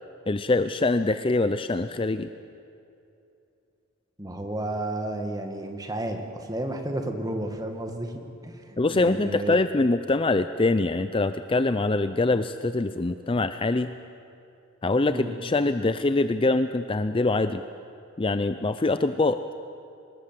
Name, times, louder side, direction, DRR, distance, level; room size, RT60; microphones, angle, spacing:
voice 1, 0.3-2.3 8.8-13.9 14.8-17.6 18.2-19.5, left 2 dB, 25° left, 11 dB, 0.5 m, -24 dB
voice 2, 4.2-8.1 8.4-9.6 15.1-15.3, right 1 dB, 15° right, 4 dB, 1.9 m, -32 dB
25.0 x 20.5 x 7.6 m, 2.6 s
head